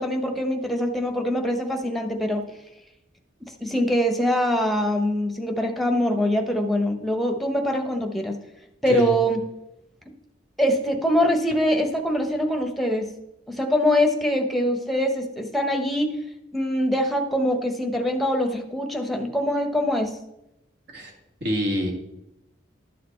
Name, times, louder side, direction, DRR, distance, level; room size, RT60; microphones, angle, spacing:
voice 1, 0.0-2.4 3.4-8.4 8.8-9.4 10.6-13.1 13.5-16.2 16.5-20.2, equal, ahead, 5 dB, 1.0 m, -23 dB
voice 2, 8.9-9.2 20.9-21.1 21.4-21.9, equal, 60° right, 1 dB, 2.2 m, -26 dB
12.0 x 6.7 x 4.4 m, 0.87 s
head